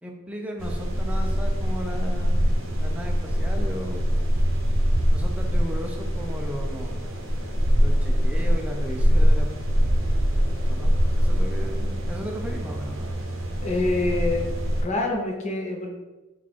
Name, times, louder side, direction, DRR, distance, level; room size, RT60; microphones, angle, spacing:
voice 1, 0.0-2.4 2.8-4.1 5.1-7.1 7.8-9.5 9.7-9.9 10.7-13.1, equal, 5° right, 1 dB, 0.4 m, -36 dB
sound 1, 0.6-14.8, equal, 65° right, 0.7 m, -23 dB
voice 2, 13.6-14.5 14.8-15.9, left 2 dB, 35° left, 1 dB, 0.7 m, -26 dB
3.8 x 2.5 x 4.5 m, 1.1 s
head